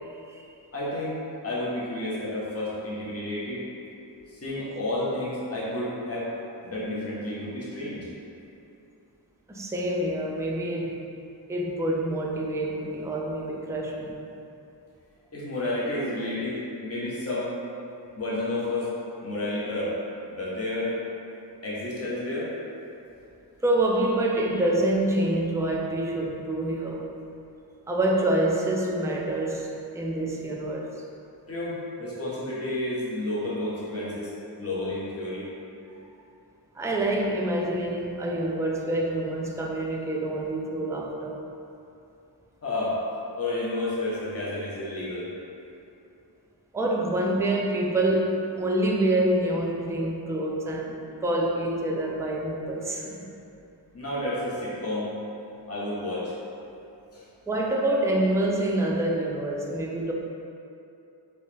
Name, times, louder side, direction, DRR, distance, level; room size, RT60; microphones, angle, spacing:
voice 1, 0.7-1.1 1.4-3.6 4.3-6.3 6.6-8.0 15.3-17.5 18.1-18.9 19.2-19.9 20.3-20.9 21.6-22.5 31.5-35.4 42.6-43.0 43.4-45.3 53.9-55.1 55.7-56.3 57.1-57.2, left 1 dB, 35° left, -8 dB, 0.9 m, -31 dB
voice 2, 9.5-11.0 11.5-14.2 23.6-27.1 27.9-30.9 36.7-41.4 46.7-53.3 57.5-60.1, right 1 dB, 5° right, -2 dB, 0.4 m, -26 dB
3.1 x 2.9 x 3.3 m, 2.7 s
wide cardioid pair, 45°, 43 cm